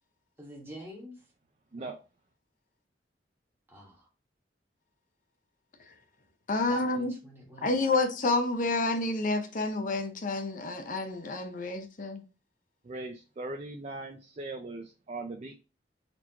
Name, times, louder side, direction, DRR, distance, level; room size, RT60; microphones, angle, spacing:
voice 1, 0.4-1.1 3.7-4.1 6.7-7.9, equal, 15° right, 1.4 m, -47 dB
voice 2, 1.7-2.0 12.8-15.6, right 2 dB, 40° right, 0.5 m, -39 dB
voice 3, 6.5-7.2 7.6-12.2, left 2 dB, 50° left, 0.7 m, -29 dB
4.3 x 3.0 x 2.8 m
head